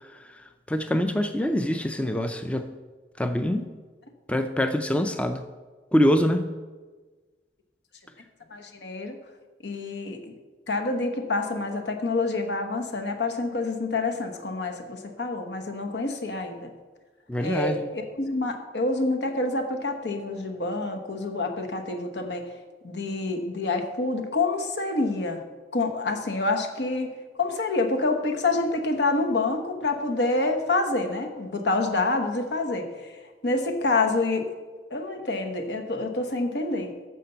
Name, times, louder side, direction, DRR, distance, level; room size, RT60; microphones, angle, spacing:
voice 1, 0.7-2.7 3.2-3.7 4.3-5.4 5.9-6.5 17.3-17.9, equal, 5° left, 8 dB, 0.4 m, -24 dB
voice 2, 8.5-9.2 9.6-10.3 10.7-16.7 17.4-22.5 22.8-25.4 25.7-27.1 27.4-33.1 33.4-34.5 34.9-36.9, left 3 dB, 75° left, 5 dB, 1.1 m, -27 dB
9.3 x 6.7 x 5.6 m, 1.4 s
head